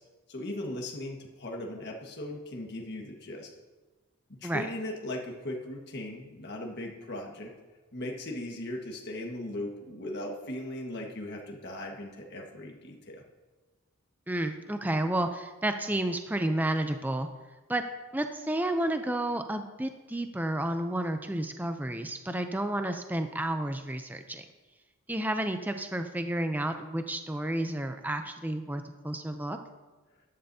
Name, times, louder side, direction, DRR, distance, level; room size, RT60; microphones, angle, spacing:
voice 1, 0.3-3.5 4.3-7.5 7.9-13.2, left 1 dB, 50° left, 1 dB, 1.6 m, -38 dB
voice 2, 14.3-17.3 17.7-17.8 18.1-24.4 25.1-29.6, right 1 dB, 10° right, 7 dB, 0.5 m, -31 dB
13.5 x 11.5 x 2.8 m, 1.2 s
head